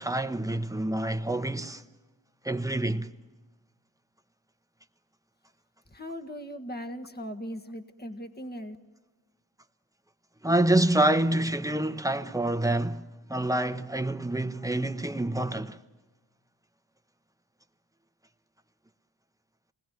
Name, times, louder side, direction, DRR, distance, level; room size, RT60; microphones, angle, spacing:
voice 1, 0.0-1.8 2.4-3.1 10.4-13.0 13.3-15.8, right 1 dB, 10° right, 1.1 m, -27 dB
voice 2, 5.9-8.8, equal, 25° left, 1.7 m, -39 dB
27.0 x 20.5 x 9.3 m
cardioid pair, 40°, 41 cm